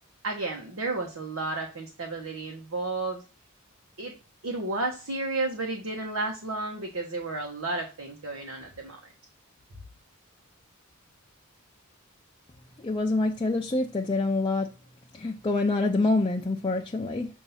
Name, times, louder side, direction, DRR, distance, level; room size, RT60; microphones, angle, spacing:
voice 1, 0.2-3.2 4.0-4.2 4.4-9.1, right 2 dB, 80° right, 1.1 m, -32 dB
voice 2, 12.8-14.7 15.1-17.3, left 2 dB, 20° left, 0.4 m, -26 dB
7.0 x 2.7 x 5.6 m
head